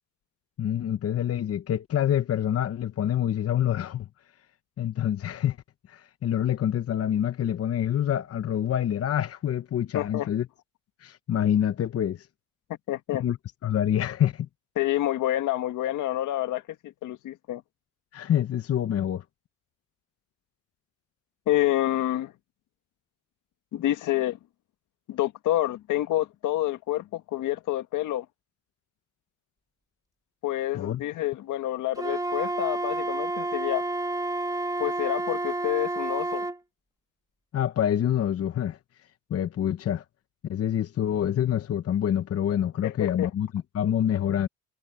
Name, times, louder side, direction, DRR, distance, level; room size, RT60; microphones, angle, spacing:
voice 1, 0.6-4.1 4.8-5.6 5.9-10.5 11.0-12.3 13.2-13.4 13.6-14.5 18.1-19.2 30.7-31.0 37.5-38.8 39.3-40.0 40.4-44.5, left 10 dB, 50° left, 0.9 m, -26 dB
voice 2, 9.9-10.3 12.7-13.2 14.8-17.6 21.5-22.3 23.7-24.4 25.1-28.3 30.4-33.8 34.8-36.5 42.8-43.3, left 14 dB, 80° left, 1.7 m, -28 dB
Wind instrument woodwind instrument, 32.0-36.6, right 2 dB, 10° right, 2.7 m, -30 dB
cardioid pair, 90°, 30 cm